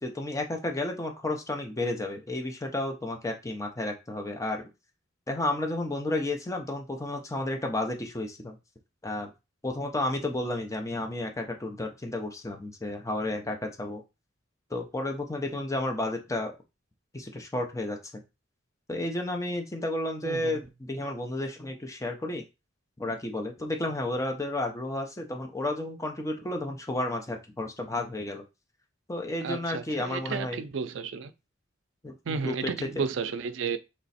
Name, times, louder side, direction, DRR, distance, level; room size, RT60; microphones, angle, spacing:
voice 1, 0.0-4.7 5.3-8.6 9.0-9.3 9.6-14.0 14.7-16.5 17.1-18.2 18.9-22.4 23.0-28.4 29.1-30.6 32.0-33.1, left 1 dB, 15° left, 0.6 m, -32 dB
voice 2, 20.2-20.5 29.4-31.3 32.3-33.8, right 5 dB, 75° right, 0.4 m, -32 dB
3.3 x 3.0 x 4.1 m
head